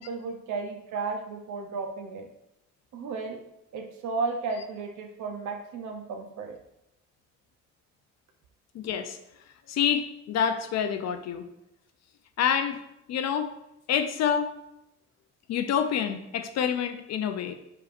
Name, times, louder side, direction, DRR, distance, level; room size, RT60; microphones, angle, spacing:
voice 1, 0.0-2.3 2.9-3.4 3.7-6.6, right 4 dB, 75° right, 4 dB, 0.6 m, -34 dB
voice 2, 8.7-9.2 9.7-11.5 12.4-12.8 13.1-13.5 13.9-14.5 15.5-17.5, left 8 dB, 60° left, 7 dB, 0.4 m, -27 dB
4.9 x 3.1 x 2.4 m, 0.84 s
cardioid pair, 90°, 30 cm